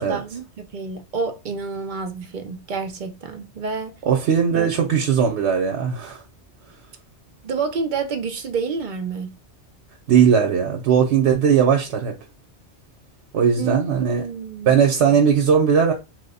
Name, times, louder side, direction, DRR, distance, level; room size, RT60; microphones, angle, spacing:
voice 1, 0.0-3.9 4.5-4.7 7.4-9.3 13.6-15.2, right 5 dB, 55° right, 0.6 m, -29 dB
voice 2, 4.1-6.2 10.1-12.2 13.3-14.2 14.7-15.9, right 7 dB, 85° right, 0.9 m, -18 dB
3.0 x 2.1 x 4.0 m
omnidirectional pair, 1.1 m